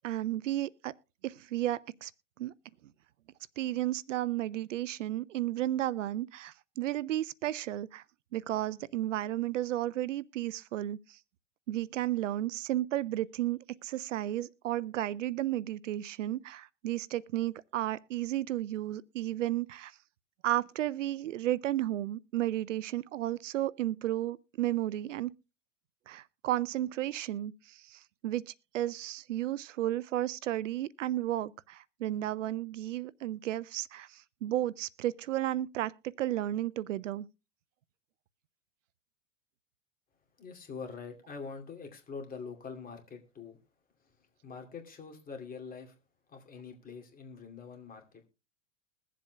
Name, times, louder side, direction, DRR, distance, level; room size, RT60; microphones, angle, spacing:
voice 1, 0.0-0.9 1.2-2.1 2.4-2.5 3.6-8.0 8.3-11.2 11.7-19.9 20.4-25.3 26.1-35.9 36.2-37.3, right 14 dB, 80° right, 0.5 m, -33 dB
voice 2, 40.4-43.6 44.4-46.0 46.3-48.3, left 5 dB, 25° left, 2.6 m, -44 dB
22.0 x 7.5 x 2.2 m
hypercardioid pair, 95°, 37 cm